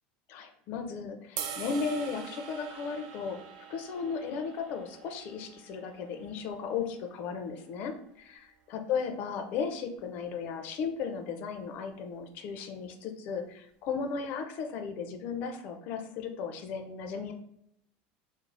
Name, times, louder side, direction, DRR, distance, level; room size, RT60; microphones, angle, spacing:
voice 1, 0.3-3.4 3.7-17.3, left 5 dB, 45° left, 5 dB, 0.4 m, -35 dB
sound 1, 1.4-7.6, right 7 dB, 75° right, 0.4 m, -44 dB
2.5 x 2.0 x 3.2 m, 0.71 s
cardioid pair, 160°, 4 cm